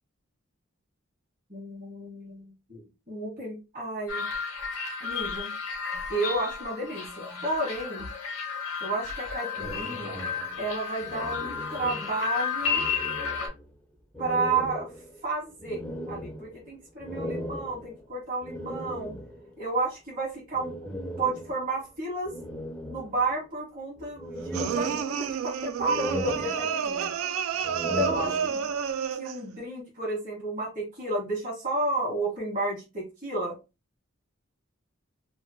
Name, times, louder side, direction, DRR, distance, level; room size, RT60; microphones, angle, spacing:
voice 1, 1.5-4.3 5.0-5.5 6.1-8.0 8.8-10.2 10.6-12.9 14.2-14.9 15.2-15.8 16.1-19.1 19.6-22.3 22.9-27.1 27.8-28.6 29.2-33.5, right 2 dB, 40° right, -5 dB, 1.3 m, -32 dB
sound 1, 4.1-13.5, left 6 dB, 85° left, 0.9 m, -33 dB
sound 2, 9.5-12.4 12.6-13.7 14.1-19.6 20.5-21.8 22.3-23.6 24.0-25.5 25.8-27.1 27.5-28.9, right 1 dB, 5° left, 0.5 m, -38 dB
sound 3, 24.5-29.4, right 7 dB, 80° right, 0.3 m, -30 dB
3.0 x 2.2 x 2.6 m, 0.27 s
head